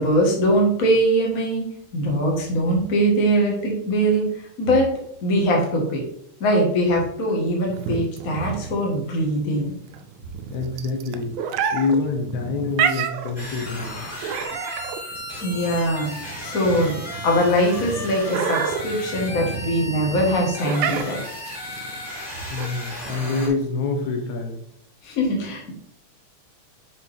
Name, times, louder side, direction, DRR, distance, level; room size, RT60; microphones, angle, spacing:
voice 1, 0.0-1.6 1.9-4.9 5.2-6.0 6.4-9.7 15.4-16.1 16.4-21.2 25.0-25.7, equal, 35° left, -1 dB, 1.6 m, -22 dB
sound 1, 7.7-23.6, right 7 dB, 80° right, 2.0 m, -30 dB
voice 2, 10.5-11.4 11.7-14.1 22.5-24.6, left 4 dB, 75° left, 3 dB, 2.3 m, -26 dB
sound 2, 13.4-23.5, left 1 dB, 15° left, 2.4 m, -35 dB
8.3 x 4.9 x 3.5 m, 0.70 s
omnidirectional pair, 3.5 m